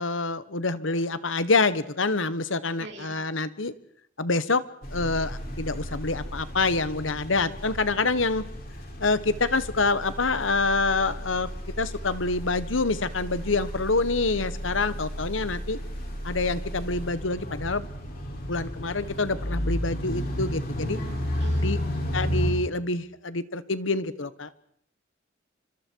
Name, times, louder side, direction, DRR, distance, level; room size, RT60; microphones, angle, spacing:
voice 1, 0.0-3.7 4.2-4.6 4.9-8.4 9.0-11.5 11.8-15.8 16.2-17.9 18.5-21.0 21.6-21.8 22.1-24.6, left 3 dB, 85° left, 14 dB, 1.4 m, -26 dB
voice 2, 2.8-3.2 20.8-21.7, right 2 dB, 65° right, 2 dB, 6.3 m, -42 dB
sound 1, 4.8-22.5, equal, 50° left, 6.5 m, -33 dB
29.5 x 25.5 x 4.8 m, 0.66 s
head